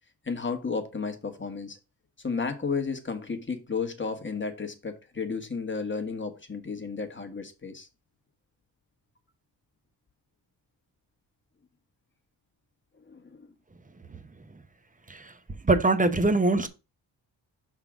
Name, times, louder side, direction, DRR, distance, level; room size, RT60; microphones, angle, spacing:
voice 1, 0.2-1.8 2.2-7.9 13.1-13.5, left 4 dB, 25° left, 1.3 m, -33 dB
voice 2, 15.6-16.7, right 2 dB, 20° right, 0.9 m, -22 dB
5.7 x 3.7 x 6.0 m
cardioid pair, 90°, 44 cm